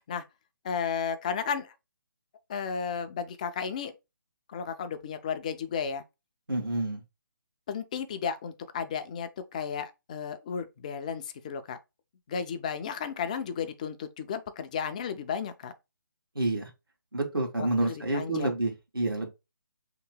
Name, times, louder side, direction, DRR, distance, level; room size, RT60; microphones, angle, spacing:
voice 1, 0.6-1.7 2.5-3.9 4.5-6.0 7.7-11.8 12.3-15.7 17.6-18.5, left 6 dB, 20° left, 0.3 m, -33 dB
voice 2, 6.5-7.0 16.3-16.7 17.1-19.3, right 2 dB, 85° right, 1.3 m, -28 dB
3.1 x 2.9 x 4.4 m
figure-of-eight pair, 145°, 11 cm